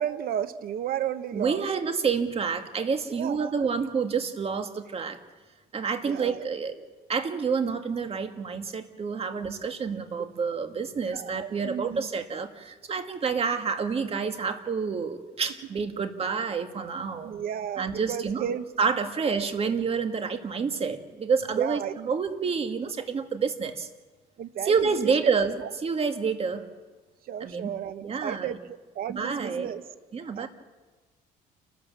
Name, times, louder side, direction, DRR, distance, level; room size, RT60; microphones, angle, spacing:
voice 1, 0.0-1.6 3.1-3.7 6.0-6.5 11.1-12.1 17.2-18.6 19.2-19.5 21.5-22.1 24.4-25.3 27.3-28.6 29.0-29.8 30.3-30.5, right 10 dB, 60° right, 12 dB, 1.1 m, -33 dB
voice 2, 1.3-5.2 5.7-6.7 7.1-17.3 17.8-21.8 22.1-23.9 24.6-26.7 27.4-27.8 28.0-28.6 29.1-29.7 30.1-30.5, right 5 dB, 35° right, 6 dB, 2.0 m, -28 dB
29.5 x 12.5 x 7.4 m, 1.3 s
cardioid pair, 110°, 17 cm